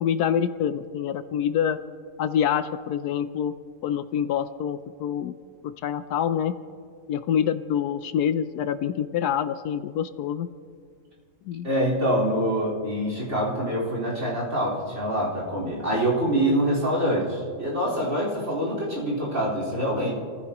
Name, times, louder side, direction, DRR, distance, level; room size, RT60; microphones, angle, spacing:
voice 1, 0.0-1.8 2.2-3.5 3.8-5.3 5.6-6.5 7.1-10.5 11.5-11.7, left 9 dB, 75° left, 11 dB, 1.1 m, -26 dB
voice 2, 11.6-20.1, equal, 45° right, -4 dB, 4.7 m, -25 dB
27.5 x 15.5 x 3.0 m, 2.1 s
omnidirectional pair, 1.8 m